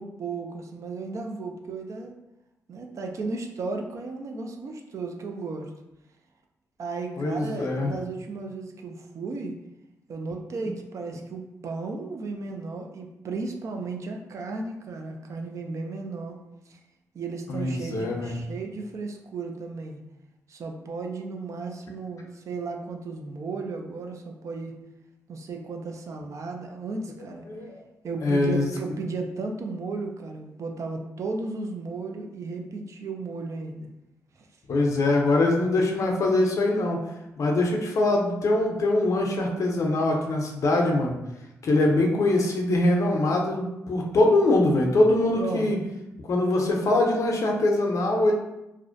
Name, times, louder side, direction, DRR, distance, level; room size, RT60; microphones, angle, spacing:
voice 1, 0.0-2.1 2.7-5.7 6.8-9.6 10.1-16.4 16.7-16.8 17.1-20.0 20.5-24.7 25.3-27.5 28.0-33.9 34.4-34.5 45.3-45.7, right 3 dB, 55° right, 3 dB, 0.4 m, -34 dB
voice 2, 7.2-7.9 10.6-10.7 17.5-18.4 27.5-27.8 28.2-28.7 34.7-37.0 37.4-41.2 41.6-45.8 46.3-48.3, left 2 dB, 60° left, 1 dB, 0.5 m, -23 dB
2.4 x 2.1 x 2.5 m, 0.92 s
cardioid pair, 65°, 6 cm